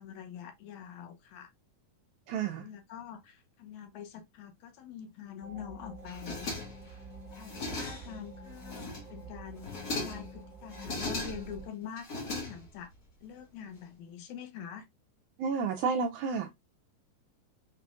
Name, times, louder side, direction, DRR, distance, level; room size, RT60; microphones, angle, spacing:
voice 1, 0.0-1.5 2.6-6.6 7.4-12.9 13.2-14.9, left 8 dB, 75° left, 1.9 m, -45 dB
voice 2, 2.3-2.7 15.4-16.5, right 5 dB, 80° right, 1.7 m, -31 dB
sound 1, 5.4-11.7, right 2 dB, 45° right, 1.3 m, -47 dB
sound 2, 6.1-6.9 7.3-8.2 8.6-9.2 9.6-10.3 10.7-11.6 12.0-12.9, left 2 dB, 55° left, 1.1 m, -38 dB
6.0 x 2.4 x 2.4 m
omnidirectional pair, 3.8 m